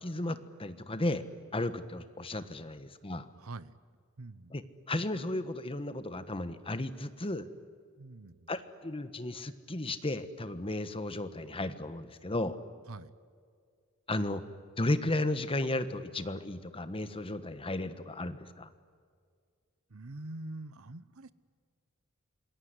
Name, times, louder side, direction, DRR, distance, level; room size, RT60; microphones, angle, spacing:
voice 1, 0.0-1.2 1.5-3.3 4.5-4.6 4.9-7.5 8.5-12.6 14.1-14.4 14.8-18.7, left 2 dB, 25° left, 11 dB, 1.3 m, -34 dB
voice 2, 3.4-3.7 4.2-4.5 8.0-8.5 12.9-13.1 19.9-21.3, right 2 dB, 90° right, 17 dB, 1.0 m, -44 dB
27.0 x 21.0 x 9.8 m, 2.1 s
head